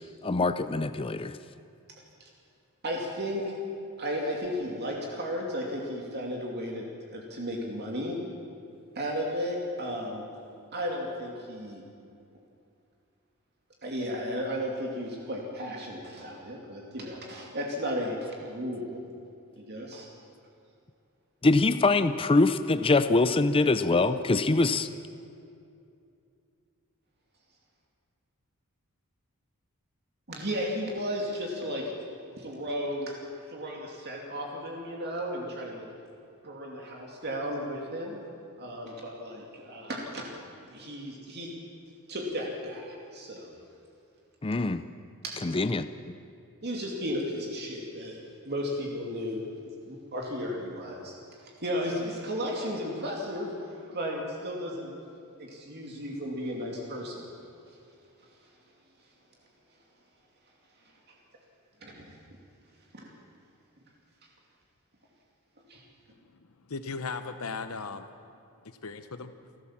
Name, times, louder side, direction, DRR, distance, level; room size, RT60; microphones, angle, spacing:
voice 1, 0.2-1.4 21.4-24.9 44.4-44.8 45.4-45.9, left 3 dB, 25° left, 12 dB, 0.5 m, -24 dB
voice 2, 2.8-3.5 4.0-6.8 7.1-8.1 8.9-10.2 10.7-11.8 13.8-19.0 19.5-20.1 30.3-31.9 32.4-33.1 33.5-35.9 36.4-38.2 38.6-40.3 40.7-41.5 42.1-43.6 45.2-45.6 46.6-48.2 48.4-51.1 51.6-55.0 55.4-57.3 61.8-62.1 62.9-63.1 65.7-65.8, equal, 50° right, -1 dB, 2.6 m, -34 dB
voice 3, 66.3-68.1 68.6-69.3, left 4 dB, 70° left, 9 dB, 0.9 m, -37 dB
29.0 x 12.5 x 7.4 m, 2.5 s
head